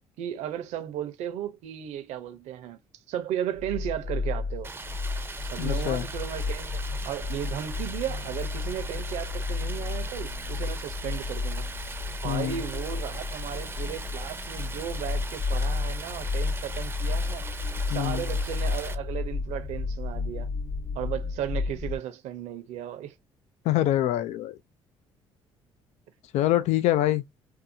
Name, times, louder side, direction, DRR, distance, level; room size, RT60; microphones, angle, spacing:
voice 1, 0.2-2.8 3.1-4.7 5.4-11.7 12.2-17.5 17.9-20.5 20.9-23.1, right 10 dB, 75° right, 0.7 m, -35 dB
sound 1, 3.5-22.0, left 4 dB, 35° left, 1.0 m, -32 dB
Stream, 4.6-19.0, right 3 dB, 20° right, 0.5 m, -40 dB
voice 2, 5.6-6.1 12.2-12.5 17.9-18.2 23.6-24.6 26.3-27.2, left 13 dB, 70° left, 0.4 m, -25 dB
2.6 x 2.4 x 2.6 m
supercardioid pair, 80°, 12 cm